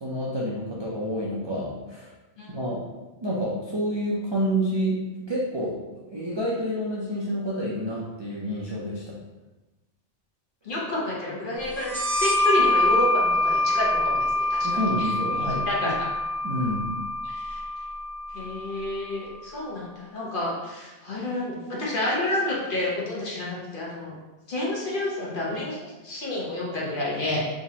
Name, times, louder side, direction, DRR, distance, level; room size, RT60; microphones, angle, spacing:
voice 1, 0.0-2.1 2.5-2.8 3.2-9.2 14.6-15.9 16.4-16.9, equal, 45° right, -6 dB, 0.3 m, -29 dB
voice 2, 10.6-15.9 17.2-17.6 18.3-24.2 24.5-27.4, left 1 dB, 50° left, -5 dB, 1.0 m, -30 dB
sound 1, 11.8-19.1, left 2 dB, 85° right, 0.9 m, -25 dB
3.5 x 2.9 x 2.8 m, 1.1 s
omnidirectional pair, 1.2 m